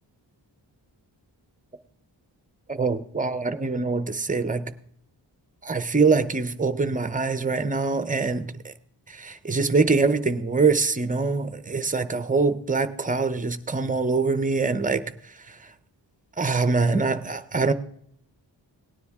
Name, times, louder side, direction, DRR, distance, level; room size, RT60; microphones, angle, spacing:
voice 1, 2.7-4.7 5.6-8.7 9.1-15.6 16.4-17.7, right 4 dB, 20° right, 0.6 m, -24 dB
18.0 x 9.9 x 3.5 m
wide cardioid pair, 170°, 43 cm